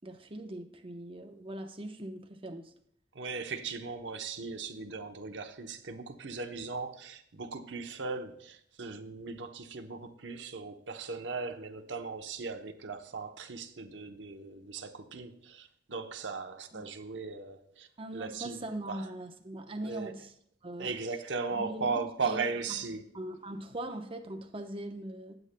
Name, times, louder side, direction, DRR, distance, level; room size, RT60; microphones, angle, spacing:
voice 1, 0.0-2.7 16.7-16.8 18.0-20.3 20.6-20.9 21.5-21.9 22.2-22.4 23.1-25.3, right 1 dB, 30° right, 4 dB, 0.8 m, -41 dB
voice 2, 3.1-19.1 19.8-20.1 20.8-23.0, right 4 dB, 85° right, 5 dB, 0.8 m, -38 dB
18.5 x 8.0 x 2.2 m, 0.67 s
head